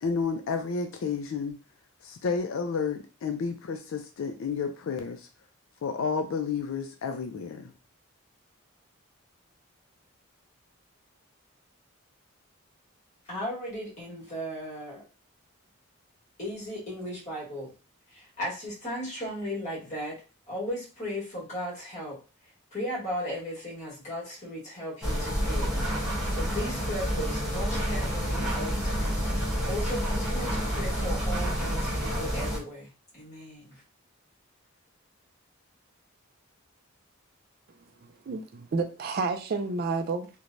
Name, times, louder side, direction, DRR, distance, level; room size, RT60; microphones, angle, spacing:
voice 1, 0.0-1.6 2.0-5.3 5.8-7.7, left 5 dB, 65° left, 0.4 m, -31 dB
voice 2, 13.3-15.0 16.4-17.7 18.1-20.2 20.5-22.2 22.7-25.8 26.0-29.3 29.6-33.8, equal, 35° left, 1.4 m, -36 dB
sound 1, 25.0-32.6, equal, 5° right, 0.9 m, -29 dB
voice 3, 38.3-40.3, right 4 dB, 45° right, 0.3 m, -30 dB
3.1 x 2.1 x 2.5 m
head